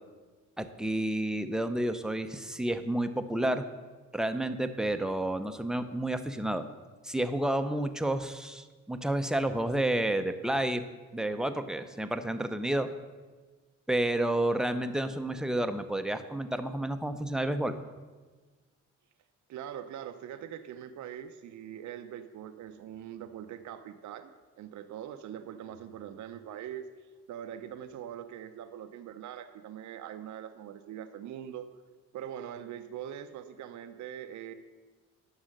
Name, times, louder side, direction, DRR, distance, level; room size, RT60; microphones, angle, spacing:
voice 1, 0.6-3.6 4.1-6.7 7.0-10.8 11.1-12.9 13.9-17.7, right 1 dB, ahead, 8 dB, 0.6 m, -30 dB
voice 2, 19.5-26.9 27.3-31.7 32.1-34.5, right 10 dB, 70° right, 8 dB, 0.6 m, -42 dB
9.9 x 6.3 x 6.5 m, 1.4 s
cardioid pair, 90°, 30 cm